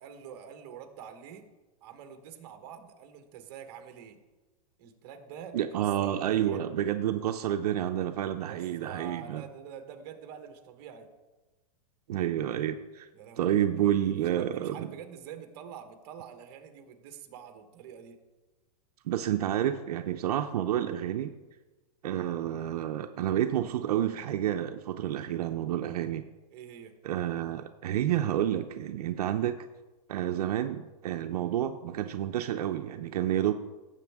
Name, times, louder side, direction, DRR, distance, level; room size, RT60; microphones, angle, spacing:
voice 1, 0.0-1.5 1.8-4.2 4.8-6.6 8.4-11.1 13.1-18.2 26.5-27.0, right 8 dB, 40° right, 7 dB, 1.3 m, -46 dB
voice 2, 5.5-9.4 12.1-13.1 13.4-14.9 19.0-21.3 22.0-26.2 27.0-29.7 30.1-33.5, right 11 dB, 75° right, 7 dB, 0.6 m, -29 dB
16.5 x 7.3 x 3.5 m, 1.2 s
supercardioid pair, 170°, 20 cm